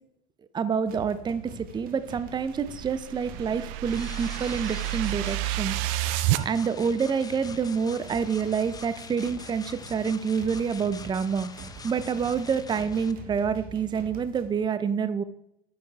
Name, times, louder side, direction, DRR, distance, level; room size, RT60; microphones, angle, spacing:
voice 1, 0.5-5.8 6.4-11.5 11.8-15.2, right 6 dB, 25° right, 13 dB, 0.6 m, -27 dB
sound 1, 0.9-14.5, right 4 dB, 50° right, 1.6 m, -46 dB
sound 2, 2.4-6.4, right 16 dB, 70° right, 0.5 m, -29 dB
sound 3, 3.9-13.1, left 5 dB, 20° left, 0.8 m, -45 dB
9.3 x 7.2 x 4.8 m, 0.79 s
hypercardioid pair, 90°, 18 cm